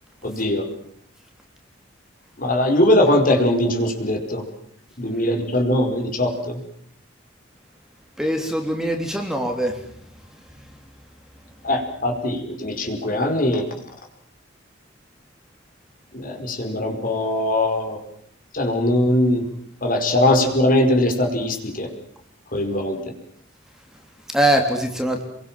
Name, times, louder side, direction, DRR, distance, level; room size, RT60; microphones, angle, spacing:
voice 1, 0.2-0.7 2.4-4.4 5.0-6.6 11.6-13.7 16.1-18.0 18.5-19.4 19.8-21.9 22.5-23.0, left 1 dB, 45° left, 4 dB, 4.8 m, -21 dB
voice 2, 8.2-9.8 24.3-25.2, right 1 dB, 5° right, 3 dB, 3.3 m, -22 dB
29.0 x 23.0 x 7.5 m, 0.64 s
head